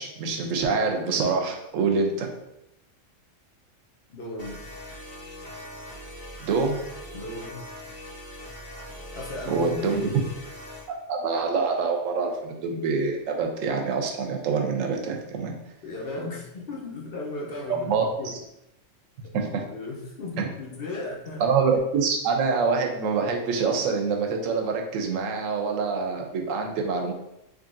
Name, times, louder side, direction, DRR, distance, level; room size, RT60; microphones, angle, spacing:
voice 1, 0.0-2.3 6.4-6.8 9.5-10.1 11.1-15.5 17.7-18.4 19.3-19.6 20.4-20.5 21.4-27.1, right 4 dB, 85° right, 2 dB, 1.0 m, -25 dB
voice 2, 4.1-4.7 7.1-7.6 9.1-10.2 15.8-18.4 19.7-21.4, left 2 dB, 55° left, -3 dB, 0.9 m, -36 dB
sound 1, 4.4-10.9, left 1 dB, 85° left, 1.9 m, -41 dB
3.7 x 3.1 x 2.5 m, 0.85 s
omnidirectional pair, 1.3 m